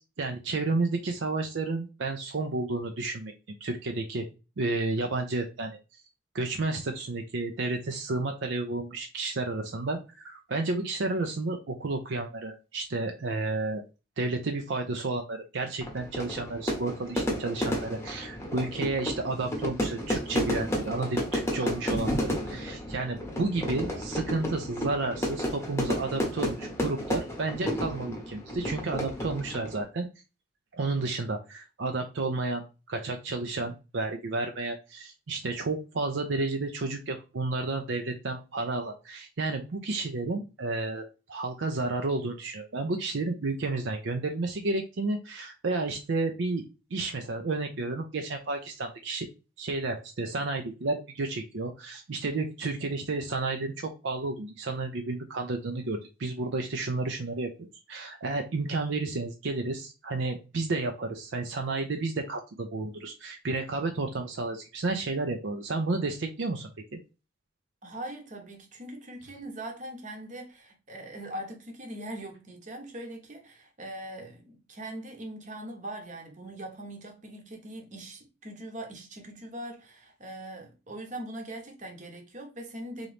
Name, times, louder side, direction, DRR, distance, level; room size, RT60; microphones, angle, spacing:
voice 1, 0.2-3.3 3.6-4.2 4.6-5.8 6.3-10.0 10.2-13.8 14.2-30.1 30.7-46.6 46.9-49.3 49.6-57.5 57.9-67.0, right 3 dB, 65° right, 0.5 m, -31 dB
Fire / Fireworks, 15.8-29.8, equal, 15° left, 0.8 m, -32 dB
voice 2, 67.8-83.1, right 1 dB, 40° right, 0.9 m, -41 dB
3.9 x 3.0 x 3.3 m
head